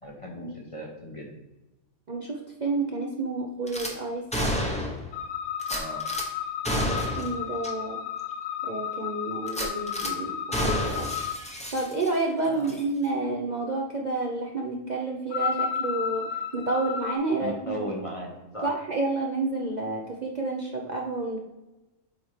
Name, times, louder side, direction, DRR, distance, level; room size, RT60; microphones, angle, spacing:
voice 1, 0.0-1.3 5.7-6.0 12.5-12.7 17.4-18.7, equal, 30° left, 0 dB, 0.9 m, -37 dB
voice 2, 2.1-4.3 6.8-8.0 8.6-11.1 11.7-17.8 18.6-21.4, right 3 dB, 40° right, 0 dB, 0.7 m, -30 dB
Gunshot gunfire / Glass, 3.7-3.9 4.3-5.1 5.6-6.3 6.6-7.3 7.6-7.7 8.2-8.3 9.5-10.1 10.5-12.3 12.6-12.8, equal, 5° left, 0.8 m, -30 dB
sound 1, 5.1-11.4 15.3-17.2, left 8 dB, 70° left, 0.9 m, -32 dB
8.2 x 4.3 x 3.3 m, 1.0 s
omnidirectional pair, 1.4 m